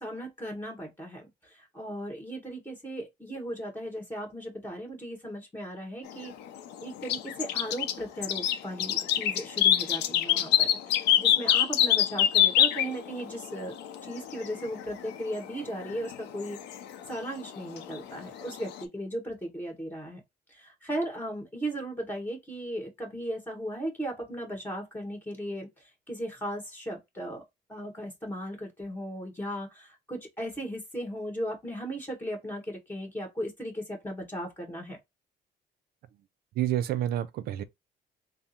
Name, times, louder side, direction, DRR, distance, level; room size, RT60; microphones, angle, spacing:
voice 1, 0.0-6.3 6.8-13.8 14.0-16.6 17.1-20.2 20.5-25.7 26.1-27.4 27.7-35.0, equal, 10° left, 1.7 m, -37 dB
sound 1, 6.1-18.8, left 11 dB, 85° left, 0.6 m, -26 dB
voice 2, 36.6-37.6, right 12 dB, 65° right, 0.5 m, -28 dB
3.5 x 2.0 x 4.2 m
cardioid pair, 110°, 17 cm